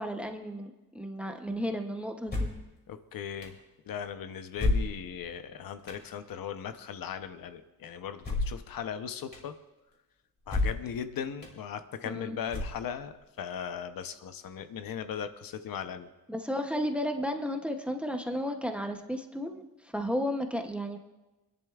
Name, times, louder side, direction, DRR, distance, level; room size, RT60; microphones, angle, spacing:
voice 1, 0.0-2.5 12.0-12.4 16.3-19.6 19.9-21.0, equal, 5° right, 4 dB, 0.7 m, -33 dB
sound 1, 2.3-2.7 3.4-3.5 4.6-5.3 5.9-6.0 8.2-8.7 9.3-9.4 10.5-10.9 11.4-11.5 12.5-13.1, left 2 dB, 30° left, 2.4 m, -30 dB
voice 2, 2.9-3.6 3.9-9.5 10.5-16.1, left 8 dB, 75° left, 9 dB, 0.8 m, -38 dB
28.5 x 10.5 x 2.4 m, 1.1 s
wide cardioid pair, 180°, 35 cm